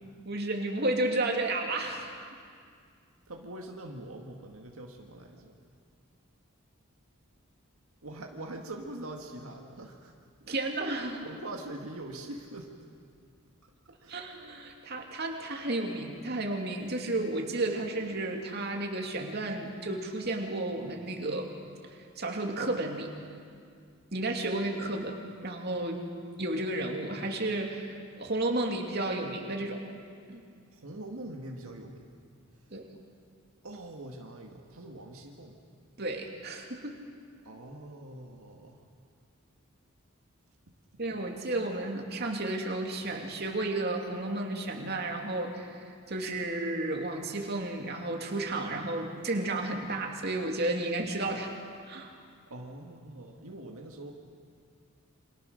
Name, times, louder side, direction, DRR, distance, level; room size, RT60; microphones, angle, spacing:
voice 1, 0.2-2.3 10.5-11.2 14.1-21.5 21.8-23.1 24.1-26.0 26.4-29.8 30.3-30.4 32.7-32.9 36.0-37.0 41.0-51.5 51.9-52.1, right 2 dB, 45° right, 1 dB, 2.8 m, -32 dB
voice 2, 3.3-5.6 8.0-10.1 11.1-12.9 14.0-14.2 30.7-32.2 32.9-33.0 33.6-35.6 37.4-38.9 52.5-54.1, right 1 dB, 75° right, 1 dB, 2.0 m, -43 dB
28.5 x 25.5 x 6.5 m, 2.2 s
head